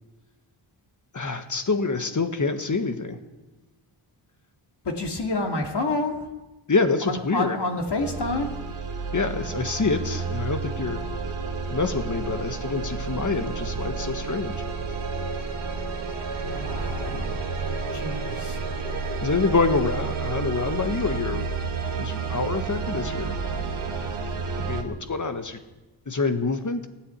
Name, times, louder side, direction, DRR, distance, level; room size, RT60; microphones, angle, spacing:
voice 1, 1.1-3.2 6.7-7.6 9.1-11.0 11.7-14.6 19.2-21.5 21.9-23.4 24.5-25.6 26.1-26.9, left 4 dB, 40° left, 8 dB, 1.5 m, -26 dB
voice 2, 4.8-6.3 7.1-8.5 16.5-17.4 17.9-18.6, left 2 dB, 55° left, 2 dB, 2.4 m, -28 dB
sound 1, 8.0-24.8, right 4 dB, 80° right, 1.9 m, -30 dB
15.5 x 9.4 x 8.3 m, 1.1 s
cardioid pair, 60°, 48 cm